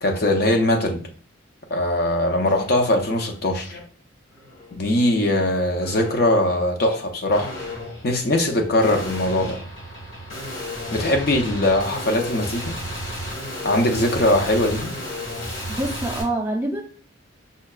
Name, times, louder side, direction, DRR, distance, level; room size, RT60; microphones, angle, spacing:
voice 1, 0.0-1.0 1.7-3.8 4.7-7.5 8.0-9.6 10.9-12.8 13.6-14.9, left 1 dB, 50° left, 0.5 m, -21 dB
sound 1, 2.5-2.7 3.1-3.8 4.3-4.7 5.8-6.4 7.3-16.2, left 1 dB, 75° left, 1.5 m, -33 dB
voice 2, 15.7-16.8, right 1 dB, 10° right, 0.4 m, -25 dB
5.6 x 2.2 x 2.3 m
head